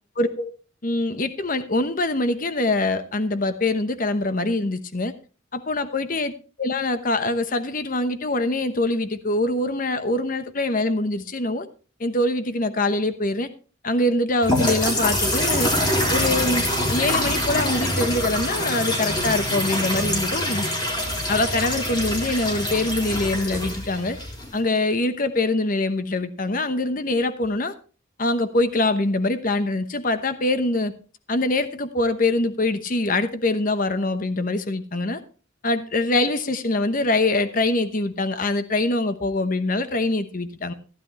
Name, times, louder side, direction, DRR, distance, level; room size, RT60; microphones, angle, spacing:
voice 1, 0.2-0.5 0.8-5.1 5.5-6.3 6.6-11.7 12.0-13.5 13.8-15.7 16.1-16.6 16.9-20.7 21.3-24.2 24.5-27.7 28.2-30.9 31.3-35.2 35.6-40.7, left 2 dB, 45° left, 10 dB, 1.0 m, -24 dB
sound 1, 14.4-24.6, left 1 dB, 25° left, 3.6 m, -25 dB
15.0 x 10.5 x 3.1 m, 0.35 s
head